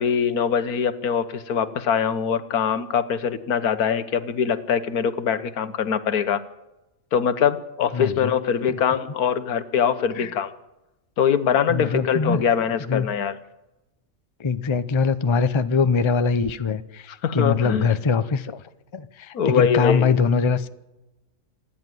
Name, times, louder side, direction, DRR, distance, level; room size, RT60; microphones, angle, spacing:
voice 1, 0.0-6.4 7.1-10.5 11.2-13.4 17.2-17.9 19.3-20.2, left 7 dB, 85° left, 1.6 m, -23 dB
voice 2, 7.9-8.3 8.7-8.8 10.1-10.3 11.7-12.4 12.9-13.1 14.4-18.6 18.9-20.7, left 5 dB, 30° left, 0.6 m, -23 dB
27.5 x 10.5 x 9.4 m
omnidirectional pair, 1.5 m